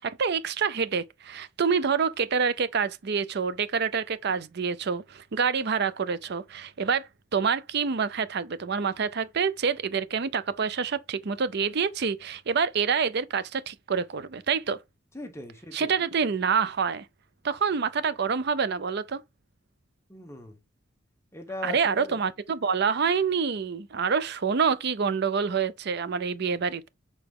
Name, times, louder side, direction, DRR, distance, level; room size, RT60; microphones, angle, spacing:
voice 1, 0.0-7.1 7.3-14.8 15.7-17.1 17.4-19.2 21.6-26.9, right 6 dB, 55° right, 0.5 m, -27 dB
voice 2, 15.1-15.9 20.1-20.6 21.3-22.2, left 2 dB, 15° left, 1.1 m, -39 dB
6.8 x 4.1 x 3.7 m
head